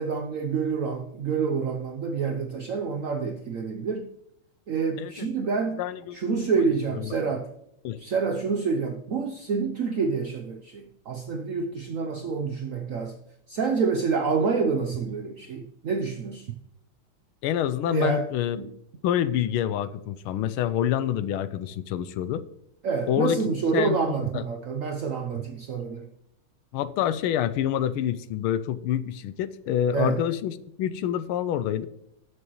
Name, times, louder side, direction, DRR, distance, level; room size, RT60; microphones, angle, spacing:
voice 1, 0.0-4.1 4.7-5.8 6.1-7.5 8.0-13.2 13.5-16.6 17.9-18.3 18.6-18.7 22.8-26.1 29.9-30.2, right 5 dB, 70° right, 4 dB, 0.7 m, -27 dB
voice 2, 5.8-6.2 7.0-7.1 7.8-8.0 17.4-18.6 19.0-22.4 23.1-23.4 23.7-24.4 26.7-31.9, left 10 dB, 80° left, 14 dB, 1.5 m, -27 dB
19.0 x 6.3 x 3.1 m, 0.79 s
omnidirectional pair, 2.3 m